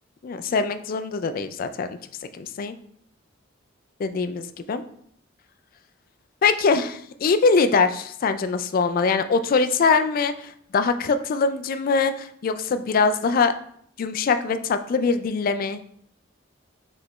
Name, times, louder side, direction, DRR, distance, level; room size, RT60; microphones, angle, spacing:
voice 1, 0.2-2.0 2.3-2.7 4.0-4.8 6.4-13.5 14.0-15.8, left 4 dB, 45° left, 10 dB, 0.3 m, -23 dB
4.9 x 3.3 x 3.0 m, 0.65 s
head